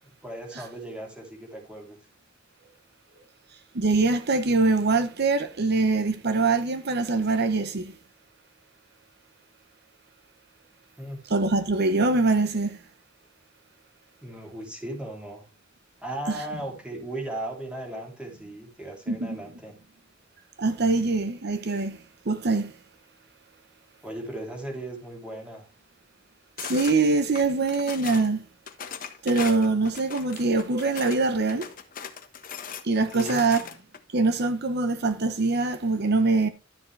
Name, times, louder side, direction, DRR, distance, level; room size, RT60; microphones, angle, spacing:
voice 1, 0.0-2.0 11.0-11.2 14.2-15.5 16.0-19.7 24.0-25.7 33.1-33.4, right 1 dB, 5° right, 2.8 m, -37 dB
voice 2, 3.7-7.9 11.3-12.8 19.1-19.4 20.6-22.0 22.3-22.7 26.6-28.4 29.2-31.7 32.8-33.6 34.1-36.5, right 3 dB, 55° right, 0.8 m, -23 dB
sound 1, 26.6-27.0 27.3-28.3 28.7-31.2 31.5-34.0, left 7 dB, 45° left, 1.3 m, -38 dB
12.0 x 7.2 x 3.2 m
head